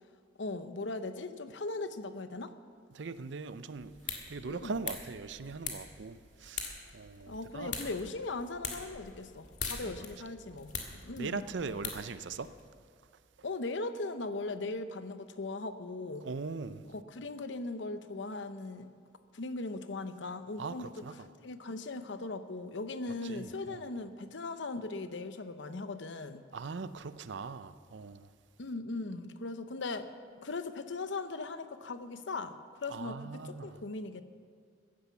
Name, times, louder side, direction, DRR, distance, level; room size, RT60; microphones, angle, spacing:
voice 1, 0.4-2.5 4.5-4.7 7.3-11.4 13.4-16.3 16.9-18.9 19.3-20.9 21.4-26.4 28.6-30.1 30.4-34.2, left 3 dB, 75° left, 0.8 m, -39 dB
voice 2, 2.9-7.9 9.8-10.1 11.2-12.6 16.2-16.9 20.6-21.3 23.2-23.9 26.5-28.3 32.9-33.8, right 4 dB, 70° right, 0.5 m, -41 dB
sound 1, 3.8-12.6, left 5 dB, 40° left, 1.8 m, -43 dB
15.5 x 10.5 x 7.0 m
head